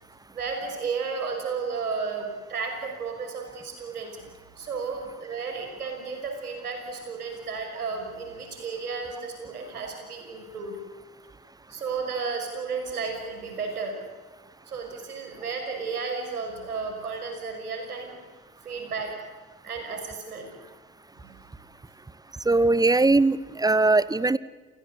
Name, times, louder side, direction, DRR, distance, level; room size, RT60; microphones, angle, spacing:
voice 1, 0.3-4.2 4.6-10.8 11.7-14.0 14.7-18.1 18.6-19.2 19.6-20.5 21.2-21.5, right 5 dB, 85° right, 3 dB, 6.2 m, -33 dB
voice 2, 22.5-24.4, right 3 dB, 10° right, 20 dB, 0.8 m, -20 dB
29.0 x 17.5 x 8.4 m, 1.4 s
hypercardioid pair, 70°, 44 cm